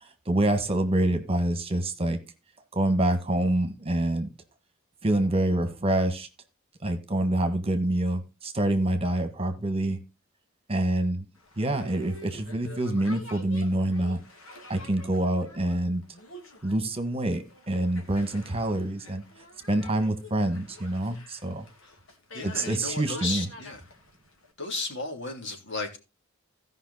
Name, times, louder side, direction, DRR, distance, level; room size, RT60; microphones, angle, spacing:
voice 1, 0.0-2.2 2.7-4.3 5.0-6.3 6.8-10.0 10.7-11.2 11.6-14.2 14.7-16.0 16.6-19.2 19.7-21.7 22.4-23.5, right 1 dB, 30° right, 1.6 m, -26 dB
Boat Water vehicle, 11.4-24.5, left 2 dB, 75° left, 2.6 m, -48 dB
voice 2, 22.3-23.8 24.6-26.0, left 3 dB, 60° left, 3.2 m, -34 dB
16.5 x 5.6 x 4.1 m
head